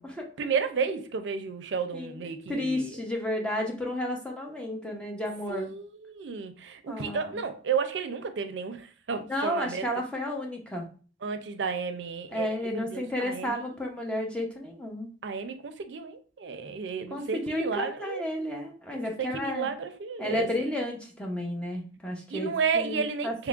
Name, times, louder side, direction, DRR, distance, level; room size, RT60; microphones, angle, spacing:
voice 1, 0.4-3.0 5.5-9.9 11.2-13.7 15.2-18.2 18.9-20.7 22.3-23.5, right 5 dB, 80° right, 0.4 m, -32 dB
voice 2, 2.5-5.7 6.9-7.4 9.3-10.9 12.3-15.1 17.1-19.7 20.2-23.5, left 1 dB, 5° left, 0.6 m, -32 dB
3.7 x 3.0 x 2.4 m
head